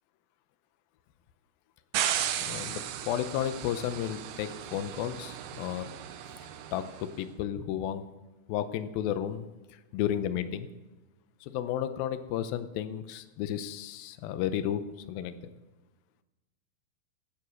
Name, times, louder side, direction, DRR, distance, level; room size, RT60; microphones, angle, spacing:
sound 1, 1.9-7.1, right 10 dB, 75° right, 2.4 m, -35 dB
voice 1, 2.4-5.8 6.3-6.4 6.7-8.0 8.5-9.5 9.9-10.7 11.4-14.8 15.1-15.4, left 10 dB, 80° left, 11 dB, 2.2 m, -33 dB
15.5 x 8.3 x 6.2 m, 1.1 s
omnidirectional pair, 4.9 m